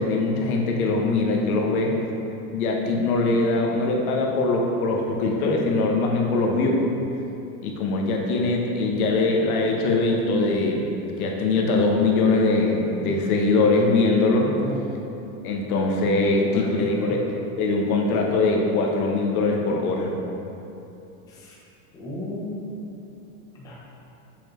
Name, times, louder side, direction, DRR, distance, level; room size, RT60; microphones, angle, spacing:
voice 1, 0.0-2.0 2.5-6.8 7.6-10.8 11.2-14.5 15.4-17.2 17.6-20.1, left 3 dB, 80° left, 0 dB, 1.1 m, -22 dB
voice 2, 16.4-17.1 21.3-21.6 21.9-22.6 23.6-23.7, left 1 dB, 10° left, -6 dB, 0.5 m, -35 dB
7.1 x 5.0 x 3.0 m, 2.9 s
supercardioid pair, 165°, 43 cm